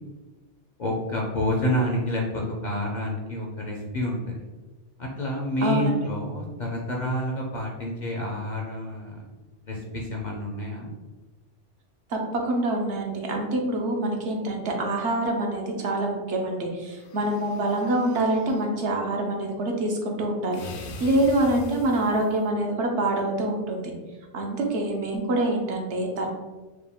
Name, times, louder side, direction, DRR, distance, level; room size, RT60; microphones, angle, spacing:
voice 1, 0.8-4.4 5.0-9.2 9.7-10.9, left 1 dB, 50° left, -1 dB, 0.6 m, -28 dB
voice 2, 5.6-6.0 12.1-23.9 24.3-26.3, right 1 dB, 70° right, 1 dB, 1.0 m, -26 dB
sound 1, 16.9-18.7 20.5-22.5, left 3 dB, 85° left, 0.9 m, -42 dB
4.7 x 2.2 x 3.4 m, 1.2 s
omnidirectional pair, 1.2 m